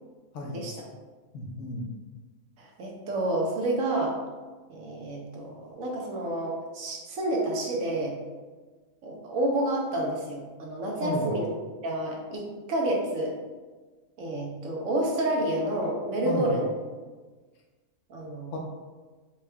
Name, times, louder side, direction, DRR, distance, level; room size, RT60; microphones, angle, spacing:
voice 1, 0.3-0.8 1.3-1.8 11.0-11.3 16.2-16.6 18.5-18.6, left 1 dB, 70° left, 0 dB, 1.0 m, -32 dB
voice 2, 2.6-4.1 4.7-8.2 9.0-11.5 11.8-13.3 14.2-16.7 18.1-18.5, right 1 dB, 80° right, -1 dB, 1.2 m, -29 dB
4.5 x 2.3 x 3.3 m, 1.3 s
omnidirectional pair, 1.4 m